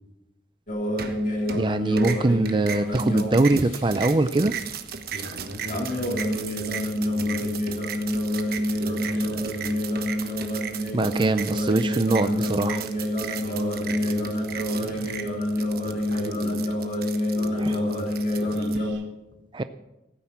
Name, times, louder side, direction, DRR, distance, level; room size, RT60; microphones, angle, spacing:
sound 1, 0.7-4.2 5.7-18.9, left 1 dB, 50° left, 3.3 m, -27 dB
sound 2, 1.0-1.7 2.0-18.8, right 7 dB, 55° right, 1.2 m, -36 dB
voice 1, 1.5-4.6 10.9-12.8 19.5-19.6, right 2 dB, 25° right, 10 dB, 0.5 m, -22 dB
voice 2, 5.1-7.8 8.8-9.8 13.4-15.1 15.8-16.8 17.4-18.0 18.4-19.0, equal, 80° right, 3 dB, 3.0 m, -38 dB
15.0 x 9.7 x 7.2 m, 0.95 s
head